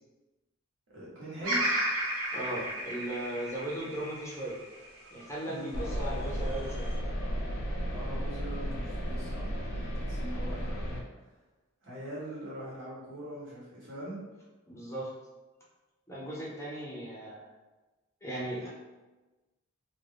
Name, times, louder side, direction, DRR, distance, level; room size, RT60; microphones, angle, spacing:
voice 1, 0.9-1.6 5.5-5.8 7.8-10.8 11.8-14.2, right 1 dB, 65° right, -7 dB, 1.0 m, -42 dB
Bird vocalization bird call bird song, 1.4-5.7 6.2-7.0, right 1 dB, 80° right, 0.8 m, -33 dB
voice 2, 2.3-4.6 5.1-6.9 14.7-15.1 16.1-17.4 18.2-18.7, right 1 dB, 15° left, -5 dB, 0.5 m, -37 dB
sound 1, 5.7-11.0, equal, 85° left, 0.5 m, -34 dB
2.4 x 2.1 x 3.3 m, 1.2 s
head